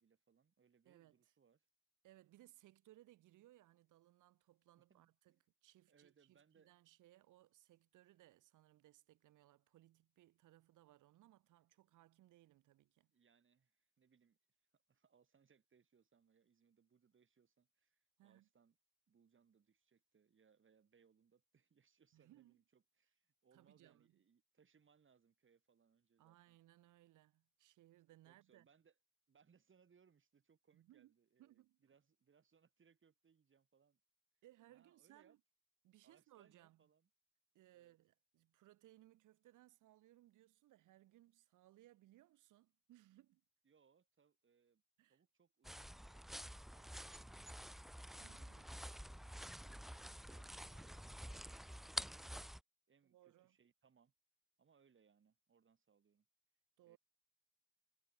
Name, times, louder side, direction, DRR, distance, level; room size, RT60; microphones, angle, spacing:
voice 1, 0.0-1.7 4.7-5.4 5.9-6.7 13.1-14.4 14.7-18.8 19.1-26.6 28.3-29.0 29.3-34.0 34.7-35.4 36.0-37.1 37.7-37.9 43.6-44.8 45.1-47.8 48.1-52.4 52.9-54.1 54.6-56.2 56.8-57.0, right 6 dB, 40° right, 4.6 m, -74 dB
voice 2, 0.8-1.2 2.0-5.4 5.6-13.1 18.2-18.5 22.1-22.6 23.5-24.2 26.2-28.7 30.7-31.1 31.4-31.9 34.4-35.4 35.8-36.8 37.5-43.4 45.0-45.2 48.2-48.7 53.0-53.6 56.8-57.0, right 15 dB, 90° right, 4.8 m, -66 dB
sound 1, 45.6-52.6, equal, ahead, 0.3 m, -49 dB
cardioid pair, 90°, 30 cm